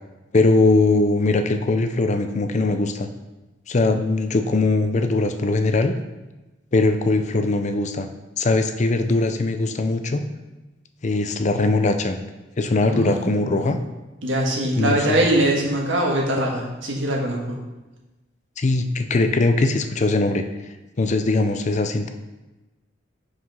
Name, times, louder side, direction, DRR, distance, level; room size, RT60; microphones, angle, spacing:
voice 1, 0.3-3.1 3.7-6.0 6.7-8.1 8.4-10.2 11.0-12.2 12.6-13.8 14.8-15.2 18.6-20.4 21.0-22.1, left 2 dB, 40° left, 7 dB, 0.5 m, -20 dB
voice 2, 12.9-13.7 14.2-17.6, right 1 dB, 85° right, -1 dB, 1.6 m, -22 dB
5.9 x 4.9 x 5.4 m, 1.1 s
head